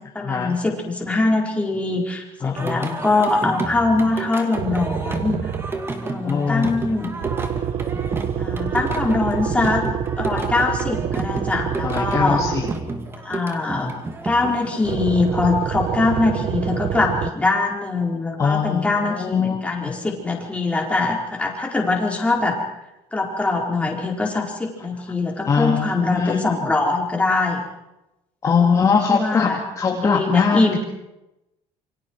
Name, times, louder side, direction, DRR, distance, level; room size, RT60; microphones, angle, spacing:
voice 1, 0.1-5.4 6.0-7.1 8.4-12.4 13.2-14.0 14.2-22.6 23.1-27.6 28.4-29.6 29.9-30.8, left 3 dB, 10° left, -1 dB, 4.7 m, -22 dB
voice 2, 2.4-3.0 6.2-6.8 11.8-12.7 18.4-20.0 25.5-26.5 28.4-30.8, left 5 dB, 25° left, 0 dB, 2.3 m, -22 dB
Singing, 2.6-14.9, right 3 dB, 20° right, 2.4 m, -31 dB
sound 1, 4.5-6.0 7.2-13.0 14.8-17.3, right 9 dB, 50° right, 0.9 m, -27 dB
28.0 x 24.5 x 4.8 m, 0.91 s
cardioid pair, 150°, 12 cm